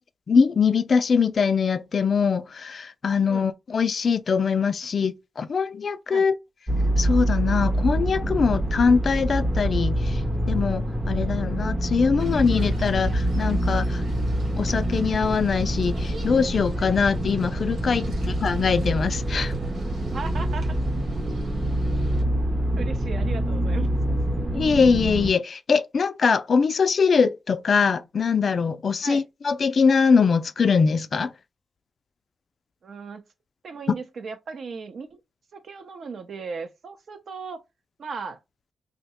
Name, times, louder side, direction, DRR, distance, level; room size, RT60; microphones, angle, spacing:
voice 1, 0.3-6.3 7.0-10.2 10.5-14.0 14.6-19.5 24.5-31.3 33.9-34.0, left 5 dB, 50° left, 0.3 m, -22 dB
sound 1, 6.7-25.3, right 1 dB, 20° right, 0.6 m, -25 dB
sound 2, 12.2-22.2, right 1 dB, 75° right, 1.2 m, -43 dB
voice 2, 20.1-20.8 22.8-23.9 29.0-29.2 32.8-33.2 33.6-35.2 35.5-37.6 38.0-38.4, right 5 dB, 60° right, 0.6 m, -36 dB
2.8 x 2.1 x 4.1 m
wide cardioid pair, 125°, 0 cm